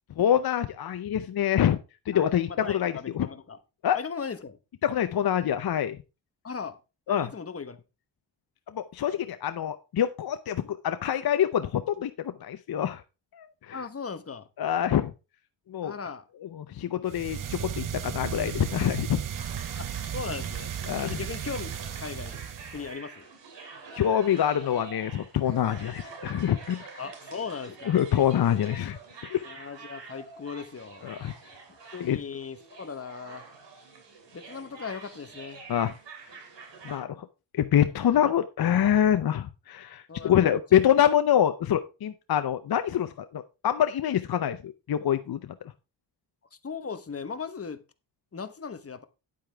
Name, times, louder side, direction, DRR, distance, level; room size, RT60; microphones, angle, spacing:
voice 1, 0.2-1.8 2.1-3.3 3.8-4.0 4.8-6.0 7.1-7.3 8.7-13.0 13.3-13.8 14.6-15.1 15.7-15.9 16.6-19.2 20.9-21.1 23.9-26.9 27.9-29.4 31.0-31.3 32.0-32.2 35.7-35.9 36.8-37.3 37.5-45.4, left 10 dB, 55° left, 0.7 m, -25 dB
voice 2, 2.1-3.6 3.9-4.6 6.4-6.8 7.1-7.8 13.7-14.5 15.8-16.2 19.8-20.7 21.0-22.4 22.7-23.3 27.0-28.0 29.4-31.1 31.9-33.4 34.3-35.7 38.2-38.3 40.1-40.6 46.5-47.8 48.3-49.0, left 5 dB, 35° left, 1.1 m, -38 dB
sound 1, 17.1-23.0, right 9 dB, 50° right, 0.7 m, -35 dB
sound 2, 19.3-37.0, right 4 dB, 75° right, 3.1 m, -46 dB
9.4 x 8.4 x 3.4 m
cardioid pair, 95°, 43 cm